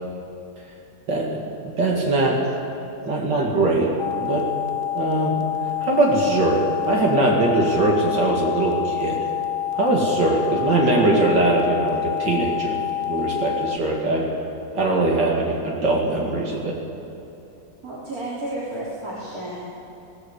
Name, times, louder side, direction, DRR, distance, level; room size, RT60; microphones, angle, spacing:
voice 1, 1.1-2.4 3.0-3.9 4.2-4.5 4.9-9.3 9.7-12.8 13.0-14.3 14.7-16.8, right 2 dB, 75° right, -1 dB, 3.0 m, -21 dB
sound 1, 4.0-13.8, left 11 dB, 85° left, 0.4 m, -27 dB
voice 2, 17.8-19.7, right 1 dB, 55° right, -7 dB, 4.0 m, -32 dB
19.5 x 17.5 x 8.2 m, 2.8 s
omnidirectional pair, 1.9 m